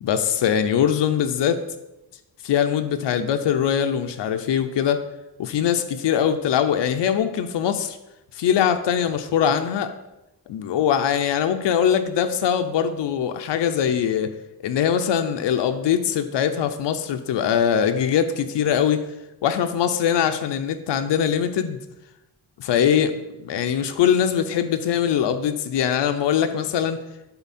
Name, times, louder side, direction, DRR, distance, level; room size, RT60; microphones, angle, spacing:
voice 1, 0.0-1.6 2.4-5.0 5.4-8.0 8.3-9.9 10.5-14.3 14.6-19.0 19.4-21.8 22.6-23.1 23.4-27.0, left 8 dB, 90° left, 8 dB, 0.6 m, -22 dB
11.0 x 4.4 x 4.2 m, 0.94 s
cardioid pair, 90°, 41 cm